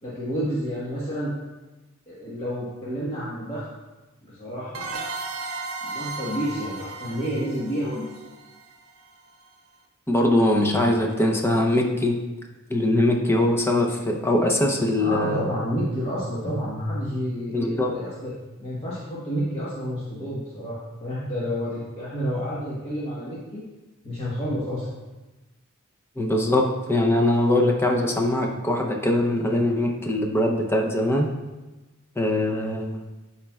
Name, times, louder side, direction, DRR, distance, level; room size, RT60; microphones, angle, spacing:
voice 1, 0.0-1.3 2.1-3.7 4.3-4.9 5.8-8.1 15.0-18.3 18.6-23.6 24.0-24.9, equal, 25° left, -9 dB, 1.3 m, -29 dB
sound 1, 4.7-9.2, right 3 dB, 75° right, 0.7 m, -35 dB
voice 2, 10.1-12.2 12.7-15.5 17.5-17.9 26.2-31.3 32.2-33.0, left 1 dB, 10° left, 1 dB, 0.6 m, -22 dB
11.5 x 4.3 x 2.3 m, 1.1 s
head